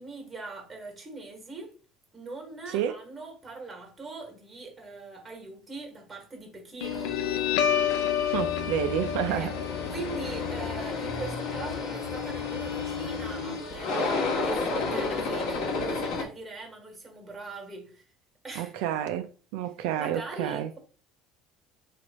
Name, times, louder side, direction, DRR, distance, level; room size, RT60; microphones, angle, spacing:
voice 1, 0.0-1.7 2.1-7.4 9.3-9.5 9.9-18.0 18.4-18.7 20.0-20.8, right 3 dB, 15° right, 1.3 m, -41 dB
Guitar, 6.8-13.8, left 9 dB, 85° left, 0.5 m, -31 dB
sound 1, 6.8-16.2, left 4 dB, 60° left, 1.1 m, -32 dB
voice 2, 8.3-9.5 18.6-20.7, right 10 dB, 80° right, 0.4 m, -30 dB
4.6 x 2.5 x 4.1 m
cardioid pair, 160°, 0 cm